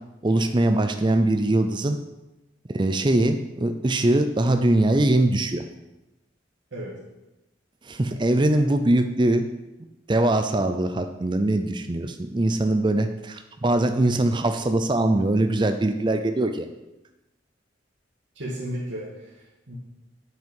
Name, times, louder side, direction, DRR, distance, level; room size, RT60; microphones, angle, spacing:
voice 1, 0.2-2.0 2.7-5.6 7.8-9.4 10.1-16.7, right 1 dB, 25° right, 7 dB, 0.5 m, -22 dB
voice 2, 18.4-19.8, equal, 75° right, -6 dB, 1.8 m, -34 dB
9.3 x 5.4 x 5.4 m, 0.98 s
head